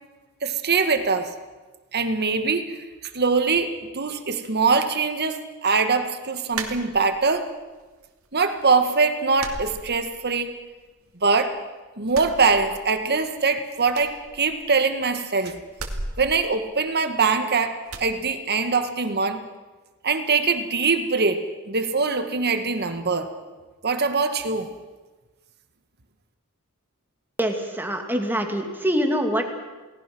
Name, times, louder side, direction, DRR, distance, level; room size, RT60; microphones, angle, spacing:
voice 1, 0.4-1.3 1.9-2.7 3.1-7.5 8.3-10.5 11.2-11.6 12.0-15.6 16.2-19.4 20.0-23.3 23.8-24.7, right 4 dB, 50° right, 7 dB, 1.8 m, -23 dB
sound 1, 6.5-7.4 7.8-8.5 8.8-8.9 9.3-10.5 10.8-11.6 12.0-13.2 13.4-13.5 13.9-15.0 15.7-17.4 17.9-18.1, right 3 dB, 70° right, 2.5 m, -36 dB
voice 2, 27.4-29.5, equal, 10° right, 3 dB, 2.6 m, -24 dB
29.0 x 19.0 x 6.2 m, 1.2 s
head